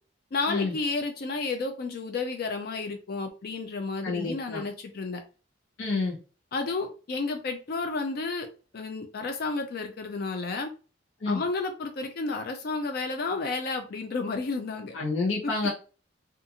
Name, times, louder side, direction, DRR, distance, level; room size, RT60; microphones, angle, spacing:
voice 1, 0.3-5.2 6.5-8.5 8.7-10.7 11.3-15.0, left 3 dB, 50° left, 5 dB, 0.4 m, -31 dB
voice 2, 4.0-4.6 5.8-6.2 11.2-11.4 14.9-15.7, left 3 dB, 90° left, -3 dB, 0.7 m, -28 dB
2.5 x 2.3 x 2.8 m, 0.35 s
head